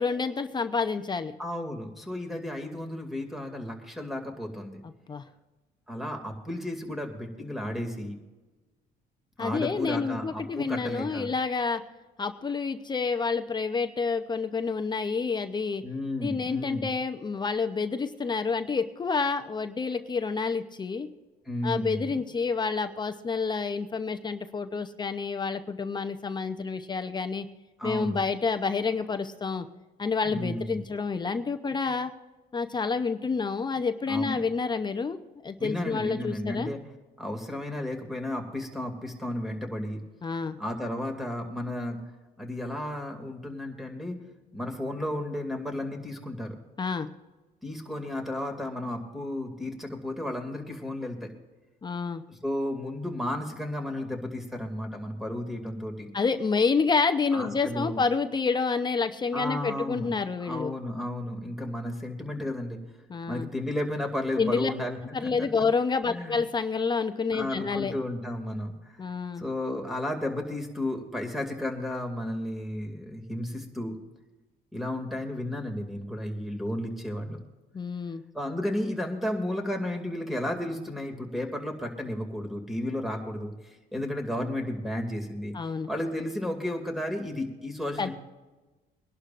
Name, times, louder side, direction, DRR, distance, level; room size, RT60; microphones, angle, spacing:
voice 1, 0.0-1.3 5.1-5.2 9.4-11.8 12.2-15.8 16.2-21.1 21.6-27.5 27.8-29.6 30.0-32.1 32.5-36.7 40.2-40.6 46.8-47.1 51.8-52.2 56.1-60.7 63.1-63.5 64.4-64.7 65.1-67.9 69.0-69.4 77.7-78.2 85.5-85.9 88.0-88.1, left 4 dB, 25° left, 8 dB, 0.7 m, -28 dB
voice 2, 1.4-4.8 5.9-8.2 9.4-11.3 15.8-16.9 21.5-22.2 27.8-28.2 30.2-30.9 34.1-34.4 35.6-36.8 37.2-40.0 40.6-42.0 42.4-44.2 44.5-46.6 47.6-51.3 52.3-56.1 57.3-58.0 59.3-60.1 60.4-62.8 63.3-65.5 66.1-66.4 67.3-69.0 69.4-74.0 74.7-77.4 78.3-85.5 85.9-88.1, left 1 dB, ahead, 3 dB, 2.4 m, -33 dB
23.5 x 11.5 x 2.6 m, 1.2 s
cardioid pair, 110°, 17 cm